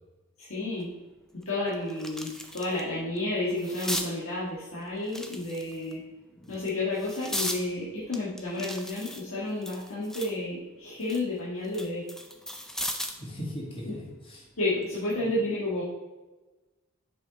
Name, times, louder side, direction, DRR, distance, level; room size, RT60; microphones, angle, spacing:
voice 1, 0.4-0.9 1.3-6.0 6.5-12.0 13.8-13.9 14.6-15.8, left 2 dB, 80° left, -8 dB, 1.5 m, -31 dB
sound 1, 0.8-0.9 1.4-2.8 3.2-4.1 5.0-5.9 6.5-7.6 8.1-10.4 10.8-13.3 14.6-14.8, equal, ahead, 0.4 m, -36 dB
voice 2, 13.2-14.5 15.2-15.3, equal, 25° left, -2 dB, 1.5 m, -39 dB
6.9 x 5.2 x 4.0 m, 1.2 s
head